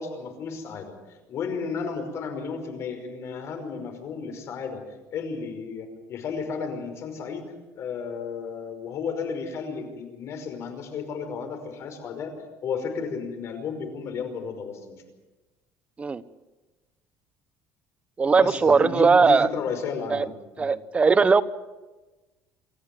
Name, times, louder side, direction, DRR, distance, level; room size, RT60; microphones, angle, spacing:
voice 1, 0.0-4.8 5.1-12.3 12.6-15.0 18.4-20.7, left 5 dB, 50° left, 6 dB, 5.3 m, -33 dB
voice 2, 18.2-19.5 20.1-20.3 20.6-21.4, right 4 dB, 20° right, 13 dB, 1.0 m, -19 dB
26.0 x 14.0 x 9.3 m, 1.2 s
cardioid pair, 135°, 6 cm